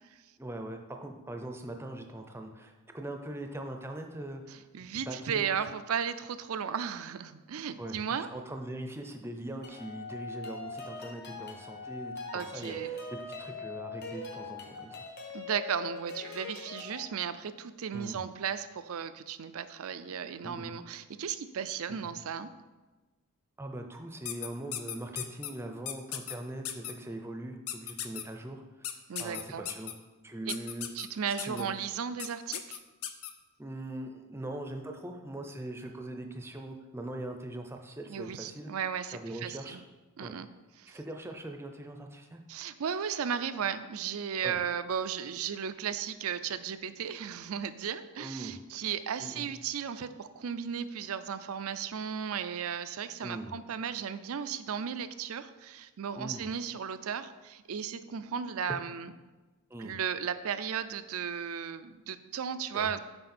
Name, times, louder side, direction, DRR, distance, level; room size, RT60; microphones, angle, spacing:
voice 1, 0.4-4.6 5.0-5.6 7.8-15.1 17.9-18.2 20.4-20.8 21.9-22.2 23.6-28.9 29.2-29.9 30.2-30.9 31.3-31.7 33.6-38.7 39.1-39.8 40.2-40.3 40.9-42.4 44.4-44.6 48.2-48.6 49.2-49.5 53.2-53.5 56.2-56.4 58.7-58.8 59.7-60.0 62.7-63.0, right 1 dB, 10° right, 4 dB, 0.6 m, -41 dB
voice 2, 4.5-8.3 12.3-12.9 15.3-22.5 29.1-29.7 30.5-30.6 30.9-32.8 38.1-39.8 40.2-40.5 40.8-41.0 42.5-59.1 59.8-63.0, right 7 dB, 70° right, 11 dB, 0.4 m, -35 dB
sound 1, 9.6-17.0, left 3 dB, 50° left, 1.1 m, -41 dB
sound 2, 24.3-25.5 25.9-26.3 26.6-26.9 27.7-28.2 28.8-29.9 30.5-31.1 31.4-31.6 32.2-32.3 32.5-33.3, left 11 dB, 75° left, 0.6 m, -36 dB
7.8 x 5.3 x 4.3 m, 1.2 s
head